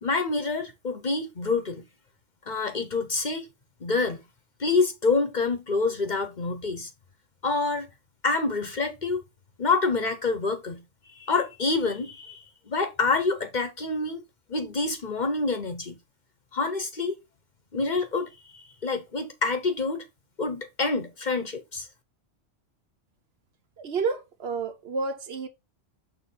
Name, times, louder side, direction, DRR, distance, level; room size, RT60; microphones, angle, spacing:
voice 1, 0.0-1.8 2.5-3.5 3.8-4.2 4.6-6.9 7.4-7.9 8.2-9.2 9.6-10.8 11.2-14.2 14.5-16.0 16.5-17.2 17.7-20.0 20.4-21.9, left 3 dB, 40° left, 0.9 m, -27 dB
voice 2, 23.8-25.5, right 4 dB, 60° right, 1.0 m, -30 dB
6.6 x 3.1 x 5.5 m
omnidirectional pair, 1.2 m